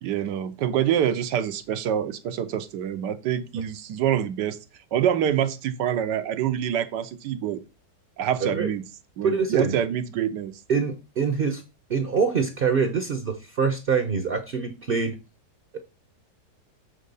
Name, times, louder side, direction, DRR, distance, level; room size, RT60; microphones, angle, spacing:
voice 1, 0.0-4.6 4.9-7.6 8.2-8.8 9.2-10.5, right 9 dB, 85° right, 1.4 m, -26 dB
voice 2, 9.2-9.8 10.7-11.6 11.9-15.2, right 5 dB, 45° right, 0.7 m, -24 dB
7.6 x 3.7 x 5.3 m
omnidirectional pair, 1.8 m